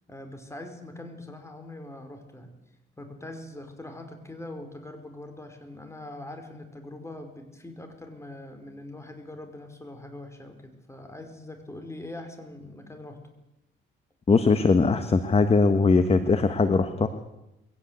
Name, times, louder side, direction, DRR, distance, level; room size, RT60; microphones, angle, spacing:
voice 1, 0.1-2.5 3.0-13.2, left 1 dB, 15° left, 6 dB, 5.0 m, -42 dB
voice 2, 14.3-17.1, left 4 dB, 30° left, 10 dB, 1.4 m, -20 dB
22.0 x 17.0 x 8.2 m, 0.91 s
cardioid pair, 90°, 20 cm